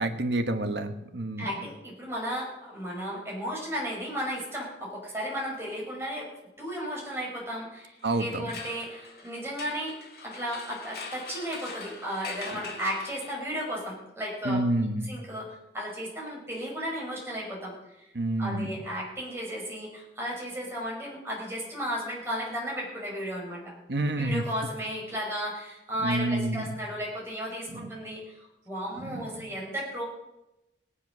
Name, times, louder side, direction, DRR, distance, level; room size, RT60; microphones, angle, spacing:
voice 1, 0.0-1.5 8.0-8.5 14.4-15.1 18.1-18.7 23.9-24.4 26.0-26.7 27.7-27.9 29.0-29.5, right 1 dB, 75° right, 8 dB, 1.4 m, -29 dB
voice 2, 1.4-6.3 6.6-9.9 10.2-14.6 15.1-17.7 18.4-23.7 24.2-30.0, equal, 15° right, -3 dB, 5.4 m, -34 dB
sound 1, 8.0-13.7, left 3 dB, 60° left, 2.6 m, -43 dB
18.0 x 10.0 x 6.1 m, 0.92 s
head